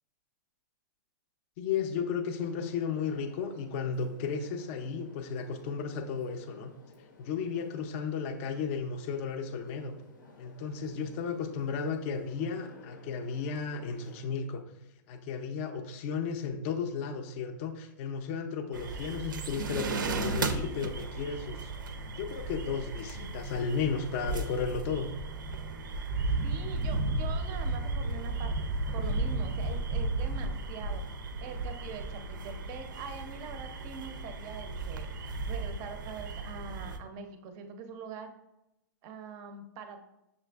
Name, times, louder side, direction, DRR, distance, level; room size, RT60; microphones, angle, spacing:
voice 1, 1.6-6.7 7.2-9.9 10.4-14.6 15.1-21.7 22.1-25.1, left 6 dB, 40° left, 7 dB, 0.5 m, -34 dB
sound 1, 2.4-14.2, left 3 dB, 80° left, 0.7 m, -55 dB
sound 2, 18.7-37.0, right 3 dB, 90° right, 0.4 m, -34 dB
voice 2, 26.4-31.0 31.4-35.1 35.5-38.3 39.0-40.0, right 5 dB, 35° right, 6 dB, 0.5 m, -43 dB
6.4 x 2.4 x 2.3 m, 0.89 s
hypercardioid pair, 140°, 10 cm